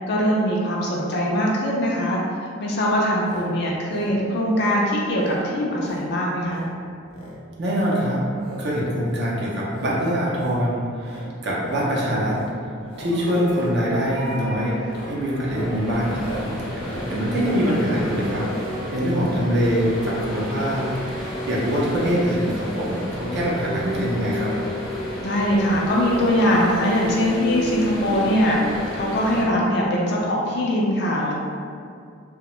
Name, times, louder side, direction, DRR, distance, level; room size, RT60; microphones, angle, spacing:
voice 1, 0.1-2.2 2.6-6.6 25.2-31.3, equal, 50° left, -3 dB, 0.3 m, -22 dB
sound 1, 3.2-3.5 3.8-4.1 4.5-4.8 5.1-5.4 5.8-6.1 6.4-6.7 7.0-7.4 7.7-8.6 9.0-9.3 9.7-10.0 10.3-10.6 11.0-11.3 11.6-11.9 12.2-12.5 12.8-13.1 13.5-13.8 14.2-14.4 14.8-18.5 19.3-19.5 19.8-19.9 20.1-20.2, equal, 90° left, 0.7 m, -39 dB
voice 2, 7.6-8.2 8.6-12.4 13.0-14.7 15.0-24.5, equal, 50° right, -5 dB, 0.5 m, -24 dB
sound 2, 12.8-29.5, equal, ahead, 0.5 m, -34 dB
sound 3, 13.2-16.2 17.2-22.0 23.4-29.5, equal, 85° right, 0.7 m, -35 dB
2.7 x 2.1 x 3.0 m, 2.3 s
head